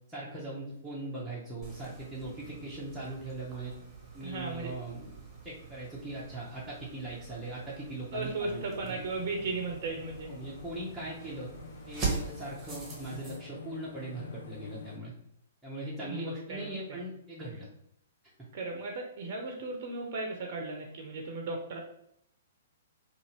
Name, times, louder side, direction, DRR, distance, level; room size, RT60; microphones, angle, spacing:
voice 1, 0.1-3.7 4.1-5.1 5.4-9.0 10.3-11.5 11.9-15.1 15.6-17.7, right 2 dB, 5° right, -9 dB, 0.7 m, -40 dB
sound 1, 1.6-13.4, right 4 dB, 20° right, 1.0 m, -42 dB
voice 2, 4.2-4.7 8.1-10.3 16.0-17.0 18.5-21.8, right 3 dB, 50° right, 2 dB, 0.5 m, -36 dB
sound 2, 8.4-15.0, left 5 dB, 65° left, 0.3 m, -48 dB
2.6 x 2.4 x 3.0 m, 0.75 s
figure-of-eight pair, 120°, 0 cm